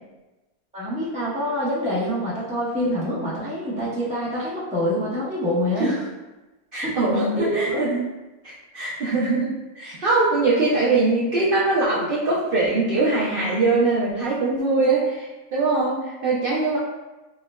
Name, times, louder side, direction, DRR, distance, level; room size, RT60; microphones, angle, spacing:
voice 1, 0.7-5.9 6.8-7.8, equal, 10° right, -9 dB, 0.3 m, -26 dB
voice 2, 6.7-8.1 8.4-16.8, right 3 dB, 70° right, -6 dB, 0.5 m, -22 dB
4.5 x 2.1 x 2.2 m, 1.1 s
omnidirectional pair, 1.6 m